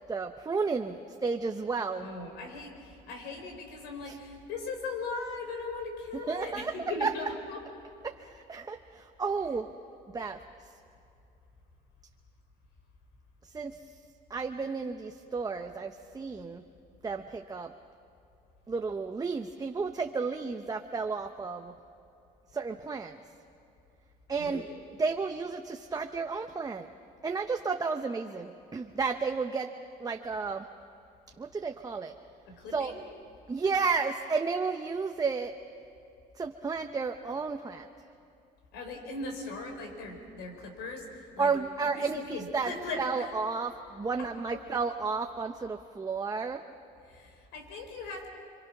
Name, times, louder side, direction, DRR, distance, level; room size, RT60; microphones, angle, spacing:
voice 1, 0.0-2.1 4.1-4.2 6.3-6.7 7.0-7.1 8.0-9.7 10.1-10.4 13.4-13.8 14.3-16.6 17.0-17.7 18.7-21.7 22.5-23.2 24.3-24.6 25.0-26.9 27.2-29.7 30.0-30.7 31.4-32.1 32.7-32.9 33.5-35.5 36.3-37.9 41.4-46.6, right 4 dB, 20° right, 5 dB, 0.9 m, -32 dB
voice 2, 2.0-7.6 24.3-24.8 32.5-33.0 38.7-41.5 41.8-43.0 44.2-44.6 47.1-48.3, left 3 dB, 90° left, 3 dB, 4.7 m, -39 dB
29.5 x 24.0 x 6.0 m, 2.8 s
cardioid pair, 110°, 17 cm